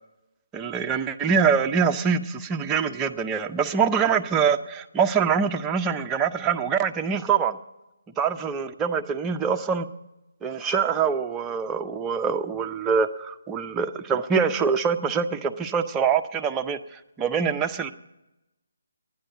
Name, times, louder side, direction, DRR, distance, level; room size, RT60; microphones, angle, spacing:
voice 1, 0.5-7.6 8.2-9.9 10.4-17.9, right 6 dB, 15° right, 0.5 m, -24 dB
11.5 x 9.9 x 8.0 m
hypercardioid pair, 155°, 0 cm